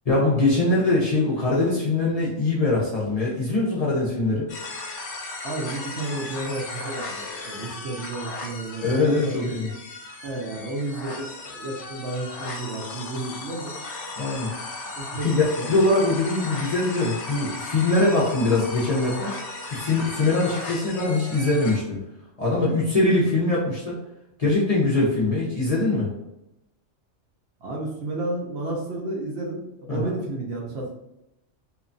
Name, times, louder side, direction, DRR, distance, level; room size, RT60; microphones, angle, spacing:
voice 1, 0.1-4.5 8.8-9.7 14.2-14.8 15.2-15.4 15.7-19.3 19.7-22.0 22.4-24.0 24.4-26.1 29.9-30.2, left 2 dB, 40° left, -6 dB, 0.6 m, -22 dB
sound 1, 4.5-21.8, left 3 dB, 70° left, 0.9 m, -36 dB
voice 2, 5.4-9.5 10.2-13.8 15.0-15.3 15.6-15.8 22.8-22.9 27.6-30.9, right 2 dB, 65° right, -1 dB, 0.8 m, -32 dB
2.8 x 2.3 x 2.5 m, 0.89 s
omnidirectional pair, 1.3 m